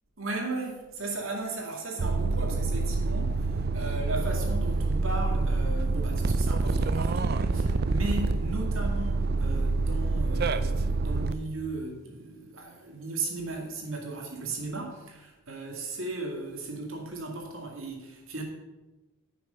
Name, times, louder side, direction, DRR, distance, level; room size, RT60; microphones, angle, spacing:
voice 1, 0.2-18.4, right 2 dB, 70° right, 1 dB, 2.2 m, -36 dB
sound 1, 2.0-11.3, right 3 dB, 50° right, 0.5 m, -27 dB
9.9 x 6.4 x 5.6 m, 1.1 s
head